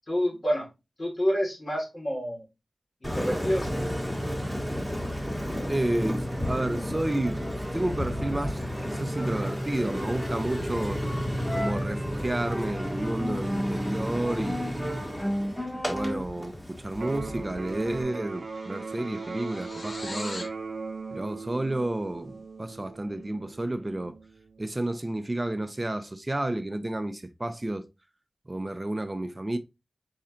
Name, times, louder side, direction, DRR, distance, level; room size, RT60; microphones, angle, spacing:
voice 1, 0.1-0.7 1.0-2.4 3.0-4.1, equal, 50° left, 2.4 m, -28 dB
Engine, 3.0-18.0, equal, 10° left, 1.4 m, -31 dB
voice 2, 5.7-7.4 7.7-11.0 11.5-14.9 15.9-20.5 21.1-24.1 24.6-27.9 28.5-29.6, right 1 dB, 30° right, 0.5 m, -31 dB
Electric guitar, 16.9-24.9, right 4 dB, 80° right, 0.4 m, -39 dB
sound 1, 17.4-17.6 17.9-20.6, left 2 dB, 70° left, 1.1 m, -42 dB
4.3 x 3.7 x 2.8 m
wide cardioid pair, 60°, 0 cm